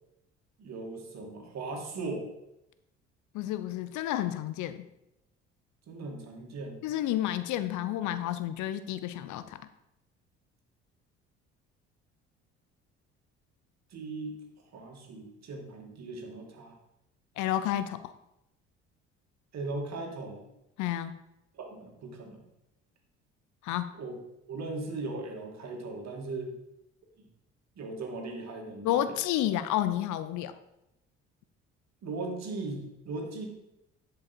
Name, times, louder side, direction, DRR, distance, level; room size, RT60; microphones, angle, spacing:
voice 1, 0.6-2.3 5.9-6.8 13.9-14.4 14.7-16.7 19.5-20.4 21.5-22.4 23.9-24.2 24.5-26.5 27.2-27.3 27.8-29.2 32.0-33.5, right 3 dB, 50° right, 2 dB, 2.2 m, -38 dB
voice 2, 3.3-4.9 6.8-9.6 17.4-18.1 20.8-21.2 23.6-23.9 28.8-30.5, left 12 dB, 60° left, 13 dB, 0.7 m, -30 dB
10.5 x 5.4 x 4.4 m, 0.87 s
hypercardioid pair, 55°, 34 cm